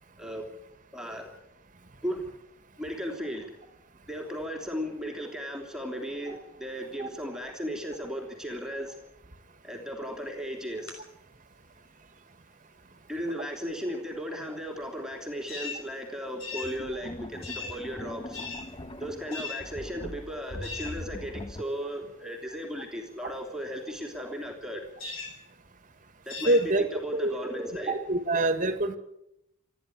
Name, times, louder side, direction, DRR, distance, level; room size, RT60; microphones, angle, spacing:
voice 1, 0.9-1.3 2.0-2.3 2.8-3.6 4.1-9.0 9.6-11.0 13.1-18.4 19.0-24.9 26.2-27.9, equal, 5° right, 1 dB, 3.2 m, -36 dB
sound 1, 10.6-10.9 15.5-15.8 16.4-16.8 17.4-17.8 18.3-18.7 19.3-19.6 20.6-21.0 25.0-25.4 26.3-26.6, left 4 dB, 70° left, 5.9 m, -38 dB
sound 2, 15.1-15.2 16.5-21.6, left 1 dB, 25° left, 0.8 m, -41 dB
voice 2, 26.5-26.8 27.1-27.3 27.9-29.0, right 1 dB, 40° right, 9 dB, 1.9 m, -25 dB
28.0 x 11.0 x 9.9 m, 0.84 s
head